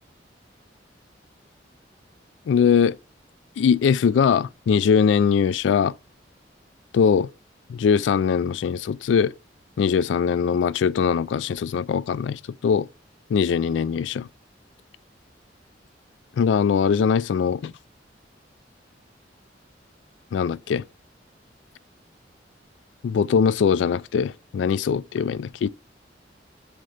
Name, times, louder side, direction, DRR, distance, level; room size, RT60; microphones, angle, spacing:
voice 1, 2.5-3.0 3.6-5.9 6.9-7.3 7.7-9.3 9.8-12.9 13.3-14.3 16.4-17.7 20.3-20.8 23.0-25.7, left 6 dB, 75° left, 0.3 m, -21 dB
6.4 x 4.3 x 6.5 m
head